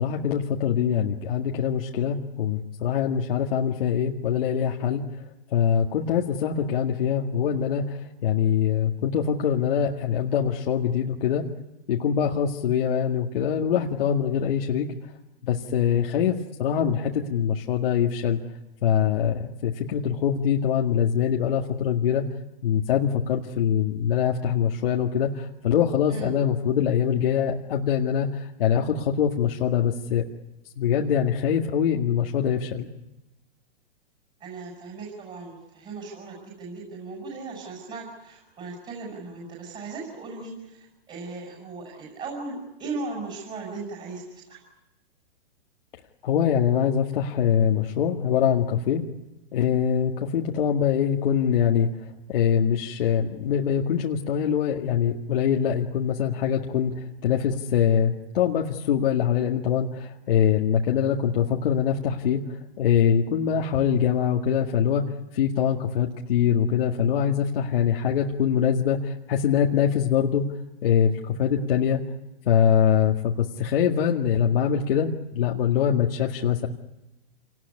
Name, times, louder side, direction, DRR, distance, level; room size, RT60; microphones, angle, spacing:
voice 1, 0.0-5.0 5.5-11.4 11.9-14.9 15.4-18.4 18.8-22.2 22.6-30.2 30.8-32.9 46.2-49.0 49.5-65.0 65.3-70.5 70.8-72.0 72.5-76.7, left 8 dB, 65° left, 0 dB, 2.0 m, -23 dB
voice 2, 34.4-40.8 41.1-44.6, right 3 dB, 20° right, -2 dB, 6.6 m, -37 dB
27.5 x 19.0 x 9.8 m, 0.97 s
hypercardioid pair, 140°, 31 cm